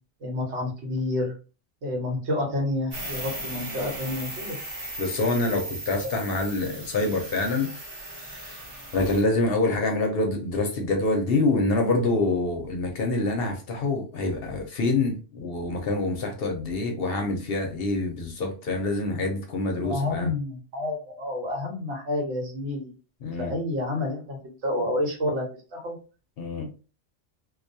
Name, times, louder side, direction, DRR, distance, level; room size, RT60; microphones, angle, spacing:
voice 1, 0.2-1.3 1.8-4.6 19.8-22.9 23.4-25.5 25.7-26.0, left 1 dB, 75° right, 1 dB, 1.1 m, -29 dB
sound 1, 2.9-9.2, right 1 dB, 25° right, 0.8 m, -37 dB
voice 2, 5.0-7.7 8.1-8.6 8.9-20.3 23.2-23.5 26.4-26.7, left 2 dB, 65° left, 3 dB, 0.7 m, -26 dB
2.3 x 2.2 x 2.6 m, 0.34 s
omnidirectional pair, 1.2 m